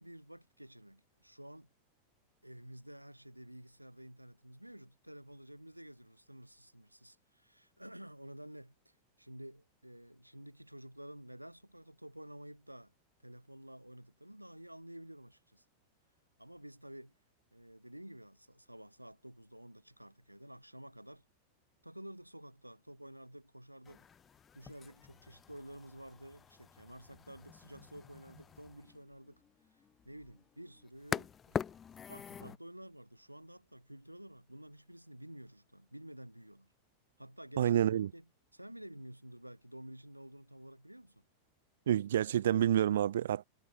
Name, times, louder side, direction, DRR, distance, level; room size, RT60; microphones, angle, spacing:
voice 1, 0.0-1.7 2.4-12.9 13.2-15.6 16.4-17.1 17.5-21.2 21.8-24.1 24.5-29.4 30.0-31.8 32.1-36.7 37.2-41.2, right 1 dB, 90° right, 5.8 m, -51 dB
sound 1, 23.8-32.6, left 7 dB, 20° left, 4.9 m, -45 dB
voice 2, 37.6-38.1 41.9-43.4, right 11 dB, 60° right, 0.8 m, -28 dB
figure-of-eight pair, 90°, 0 cm